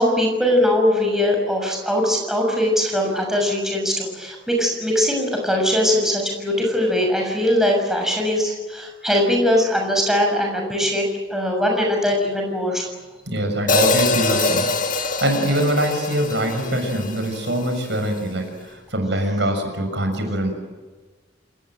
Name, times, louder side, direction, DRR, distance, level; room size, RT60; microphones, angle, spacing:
voice 1, 0.0-11.0 11.3-12.9, left 1 dB, ahead, 0 dB, 6.7 m, -21 dB
voice 2, 13.3-20.5, right 1 dB, 65° right, 5 dB, 6.7 m, -23 dB
Hi-hat, 13.7-17.9, left 3 dB, 45° left, 2.2 m, -24 dB
29.0 x 20.0 x 9.1 m, 1.3 s
head